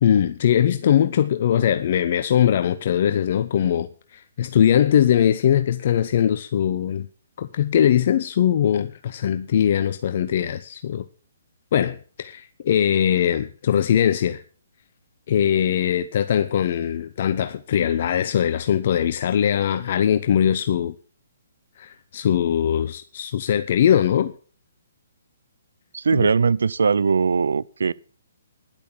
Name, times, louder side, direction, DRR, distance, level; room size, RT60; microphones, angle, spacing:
voice 1, 0.0-7.1 7.4-11.0 11.7-14.4 15.3-20.9 21.8-24.3 26.1-26.3, left 9 dB, 50° left, 0.7 m, -21 dB
voice 2, 25.9-27.9, right 5 dB, 70° right, 0.5 m, -20 dB
11.0 x 8.5 x 7.4 m
figure-of-eight pair, 135°, 0 cm